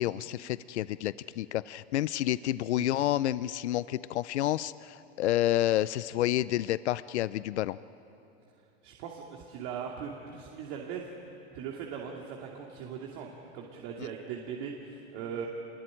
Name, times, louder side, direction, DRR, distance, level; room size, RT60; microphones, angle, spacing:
voice 1, 0.0-7.8, left 13 dB, 85° left, 17 dB, 0.6 m, -29 dB
voice 2, 8.8-11.1 11.5-15.5, right 7 dB, 60° right, 0 dB, 2.8 m, -39 dB
26.5 x 21.5 x 10.0 m, 2.9 s
hypercardioid pair, 100°, 33 cm